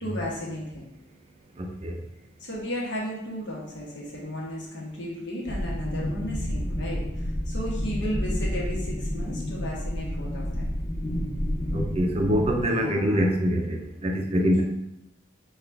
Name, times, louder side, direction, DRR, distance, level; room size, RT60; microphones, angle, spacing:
voice 1, 0.0-0.8 2.4-10.6 12.6-13.2 14.5-14.6, equal, 60° left, -4 dB, 1.3 m, -34 dB
voice 2, 1.6-2.0 11.7-14.6, equal, 30° right, 2 dB, 0.5 m, -24 dB
sound 1, 5.5-12.6, equal, 40° left, 1.4 m, -30 dB
5.8 x 2.4 x 3.4 m, 0.86 s
head